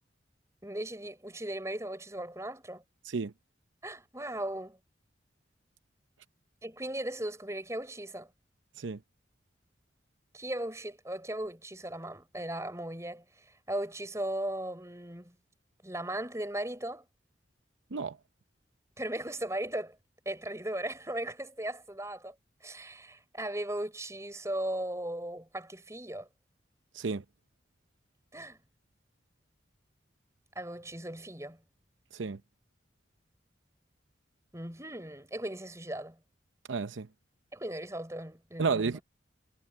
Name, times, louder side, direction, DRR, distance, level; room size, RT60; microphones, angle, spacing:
voice 1, 0.6-2.8 3.8-4.8 6.6-8.3 10.3-15.3 15.8-17.1 19.0-20.0 20.3-22.3 22.6-26.3 28.3-28.6 30.6-31.6 34.5-36.2 37.5-39.0, right 1 dB, 15° right, 5.9 m, -37 dB
voice 2, 36.7-37.1 38.6-39.0, right 4 dB, 85° right, 0.7 m, -31 dB
head